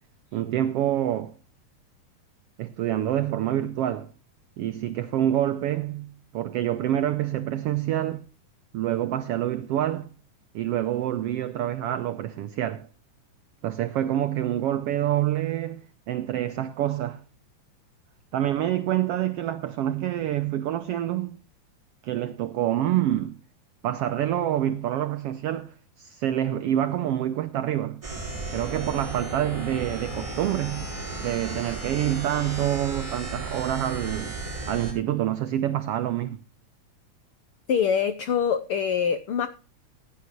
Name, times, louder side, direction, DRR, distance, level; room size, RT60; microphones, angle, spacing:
voice 1, 0.3-1.4 2.6-4.1 4.6-8.2 8.7-10.1 10.5-12.9 13.6-17.2 18.3-21.4 22.0-23.4 23.8-28.0 28.5-30.9 31.2-36.4, right 12 dB, 85° right, 1.3 m, -27 dB
sound 1, 28.0-34.9, right 2 dB, 10° right, 4.8 m, -34 dB
voice 2, 37.7-39.5, left 7 dB, 80° left, 1.2 m, -24 dB
16.5 x 10.5 x 3.0 m
omnidirectional pair, 3.5 m